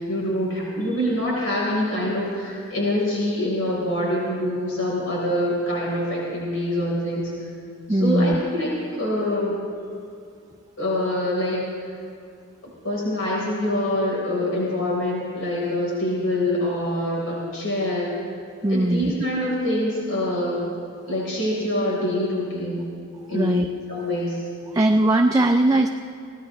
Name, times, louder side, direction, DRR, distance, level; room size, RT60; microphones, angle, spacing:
voice 1, 0.0-7.3 7.9-9.6 10.8-11.6 12.6-18.1 18.7-20.7 21.1-22.8 23.3-23.6 23.9-24.4, left 1 dB, 75° left, -5 dB, 4.1 m, -25 dB
voice 2, 7.9-8.4 18.6-19.1 23.3-23.7 24.7-25.9, right 1 dB, 15° right, 3 dB, 0.5 m, -19 dB
26.0 x 17.0 x 3.2 m, 2.5 s
head